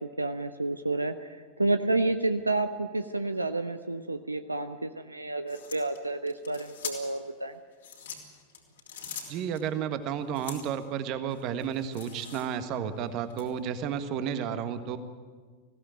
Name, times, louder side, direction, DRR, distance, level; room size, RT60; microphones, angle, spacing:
voice 1, 0.0-7.6, right 2 dB, 85° right, 9 dB, 0.7 m, -30 dB
sound 1, 5.5-7.3 7.7-9.6 10.3-10.8 11.3-12.7 13.3-13.5, left 7 dB, 65° left, 3.3 m, -43 dB
voice 2, 9.3-15.0, right 8 dB, 40° right, 10 dB, 1.5 m, -32 dB
20.0 x 16.0 x 9.1 m, 1.5 s
figure-of-eight pair, 90°, 0 cm